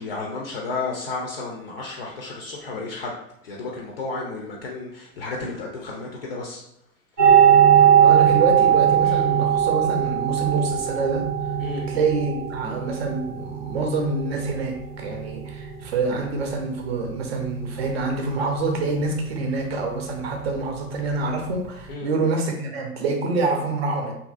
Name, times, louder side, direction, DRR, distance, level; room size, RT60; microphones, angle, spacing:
voice 1, 0.0-3.1 3.4-6.6 11.6-11.9 21.9-22.1, left 3 dB, 45° left, -2 dB, 0.5 m, -32 dB
sound 1, 7.2-21.9, right 8 dB, 15° right, 0.3 m, -21 dB
voice 2, 7.7-11.2 11.9-24.1, right 3 dB, 45° right, 2 dB, 0.7 m, -26 dB
2.8 x 2.5 x 2.4 m, 0.77 s
figure-of-eight pair, 105°, 44 cm